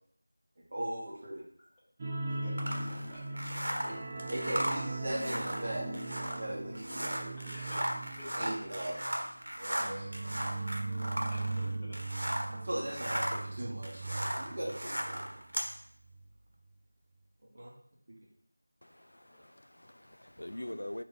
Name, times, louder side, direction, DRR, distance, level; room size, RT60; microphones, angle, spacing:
voice 1, 0.7-1.4 3.8-4.0 4.3-6.0 6.3-7.3 8.4-9.0 9.6-10.1 11.8-11.9 12.6-15.4 17.5-17.7, right 1 dB, 35° right, -2 dB, 0.9 m, -38 dB
sound 1, 2.0-15.3 15.6-15.7 16.1-16.2, right 2 dB, 15° right, 0.4 m, -39 dB
voice 2, 2.3-3.1 3.8-3.9 7.5-9.0 10.9-12.0 19.3-19.5 20.5-20.7, equal, 5° left, -13 dB, 0.8 m, -50 dB
sound 2, 2.6-12.6 12.8-15.7, equal, 80° right, 0.9 m, -37 dB
voice 3, 18.8-21.0, left 1 dB, 75° left, 11 dB, 0.3 m, -44 dB
3.8 x 2.6 x 3.5 m, 0.65 s
figure-of-eight pair, 175°, 0 cm